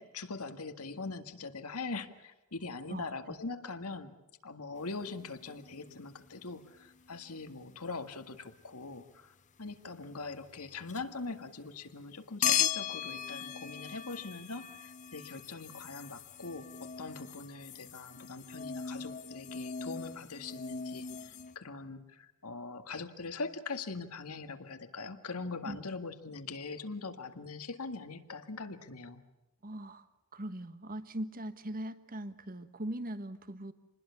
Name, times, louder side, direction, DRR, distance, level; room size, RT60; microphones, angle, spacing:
voice 1, 0.0-4.2 4.4-29.2, left 3 dB, 80° left, 8 dB, 2.0 m, -42 dB
sound 1, 5.0-6.3 6.8-7.2 10.5-11.0 12.4-21.5, left 9 dB, 35° left, 0.7 m, -38 dB
voice 2, 29.6-30.1 30.3-33.7, right 1 dB, 40° right, 12 dB, 1.4 m, -40 dB
27.5 x 20.5 x 7.1 m, 1.0 s
head